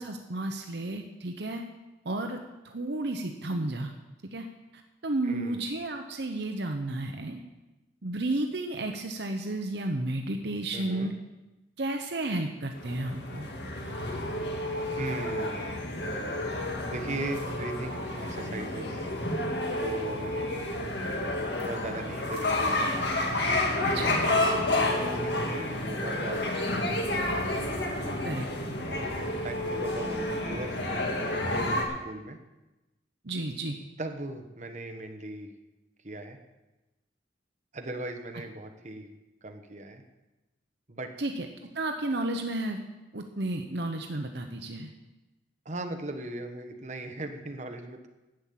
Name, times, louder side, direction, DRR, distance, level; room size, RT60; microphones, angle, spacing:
voice 1, 0.0-1.6 2.0-2.4 2.6-3.9 4.3-4.5 5.0-7.4 8.0-11.1 11.8-13.5 23.8-24.2 28.2-28.5 33.2-33.8 41.2-41.5 41.7-42.8 43.1-44.9, right 2 dB, 60° right, 4 dB, 0.9 m, -32 dB
voice 2, 5.2-5.7 10.7-11.1 15.0-15.7 16.8-19.1 19.8-20.5 21.5-23.0 24.4-27.0 28.9-32.4 34.0-35.5 36.0-36.4 37.7-39.1 39.4-40.0 40.9-41.1 45.6-48.1, right 2 dB, 40° right, 5 dB, 1.2 m, -38 dB
sound 1, 12.8-31.8, left 1 dB, 60° left, 1.9 m, -30 dB
11.0 x 7.3 x 8.5 m, 1.1 s
head